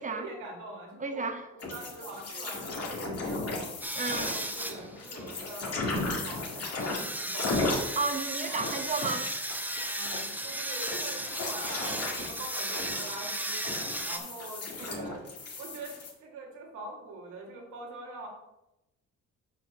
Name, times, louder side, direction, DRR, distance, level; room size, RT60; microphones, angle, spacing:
voice 1, 0.0-3.7 4.1-5.8 6.2-7.8 8.5-8.8 9.9-13.6 14.0-15.3 15.6-15.9 16.2-18.3, right 2 dB, 85° right, -1 dB, 2.3 m, -43 dB
voice 2, 1.0-1.5 2.3-2.4 4.0-4.4 8.0-9.3 14.8-15.1, right 4 dB, 25° right, 7 dB, 1.0 m, -33 dB
sound 1, 1.6-16.1, left 2 dB, 50° left, 2.1 m, -36 dB
sound 2, 3.8-14.2, right 1 dB, 5° right, 0.7 m, -36 dB
6.1 x 4.8 x 6.1 m, 0.91 s
cardioid pair, 90°, 30 cm